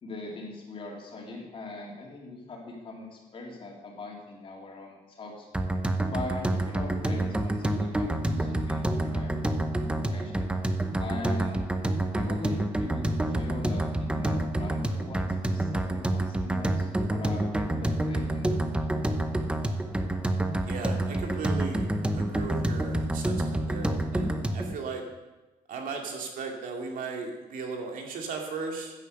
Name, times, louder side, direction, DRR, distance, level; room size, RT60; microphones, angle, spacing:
voice 1, 0.0-5.5 6.1-9.4 9.8-10.5 11.0-11.6 12.2-18.6, left 2 dB, 35° left, -1 dB, 3.3 m, -41 dB
sound 1, 5.5-24.7, right 1 dB, 5° right, 0.8 m, -28 dB
voice 2, 20.6-21.9 22.1-25.0 25.7-29.0, right 4 dB, 60° right, 2 dB, 2.5 m, -36 dB
15.0 x 9.8 x 6.7 m, 1.1 s
cardioid pair, 175°, 16 cm